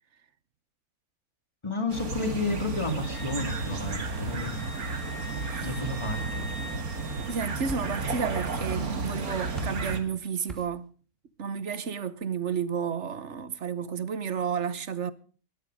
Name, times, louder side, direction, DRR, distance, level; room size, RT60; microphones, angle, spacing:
voice 1, 1.6-4.6 5.6-6.5, left 2 dB, 20° left, 2.8 m, -31 dB
sound 1, 1.9-10.0, right 3 dB, 75° right, 2.6 m, -33 dB
Wind instrument woodwind instrument, 3.0-7.5, right 1 dB, 70° left, 6.8 m, -44 dB
voice 2, 5.4-5.7 7.3-10.9 11.4-15.1, right 6 dB, 55° right, 1.3 m, -32 dB
sound 2, 7.7-8.2 8.5-9.2 9.5-9.9 10.5-10.9, equal, ahead, 2.5 m, -43 dB
19.0 x 13.0 x 5.1 m
omnidirectional pair, 1.6 m